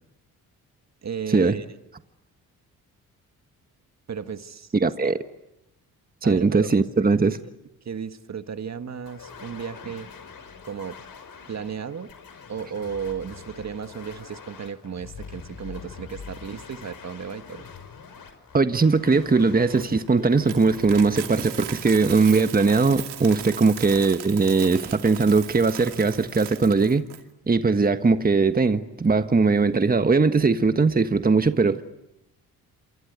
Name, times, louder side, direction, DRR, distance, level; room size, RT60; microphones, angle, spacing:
voice 1, 1.0-1.7 4.1-5.1 6.2-6.7 7.2-7.3 7.8-10.1 10.6-11.0 11.5-12.1 12.5-17.6, right 7 dB, 45° right, 10 dB, 1.7 m, -34 dB
voice 2, 4.7-5.2 6.2-7.4 18.5-27.1 27.5-31.8, right 4 dB, 20° right, 9 dB, 1.5 m, -20 dB
sound 1, 9.0-22.9, left 6 dB, 55° left, 6.0 m, -44 dB
Coin (dropping), 19.8-27.2, right 12 dB, 80° right, 2.5 m, -38 dB
28.0 x 25.0 x 8.2 m, 0.89 s
supercardioid pair, 60°, 39 cm